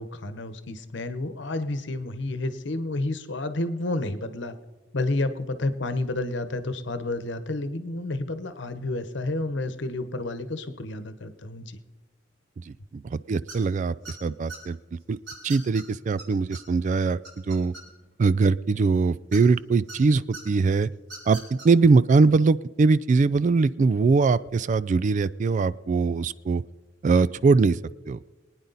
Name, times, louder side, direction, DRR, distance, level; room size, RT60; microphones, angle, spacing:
voice 1, 0.0-4.5 4.9-11.8, left 2 dB, 65° left, 11 dB, 1.0 m, -30 dB
voice 2, 12.6-14.8 15.1-15.2 15.4-17.2 17.5-17.7 18.2-20.9 21.3-26.6 27.0-27.8 28.1-28.2, right 4 dB, 40° right, 17 dB, 0.3 m, -22 dB
sound 1, 13.5-13.7 14.0-14.6 15.3-15.8 16.2-16.3 16.5-16.6 17.0-18.1 19.3-20.0 20.3-20.4 21.0-21.7, right 3 dB, 70° right, 5.3 m, -40 dB
23.0 x 9.7 x 4.0 m, 1.3 s
head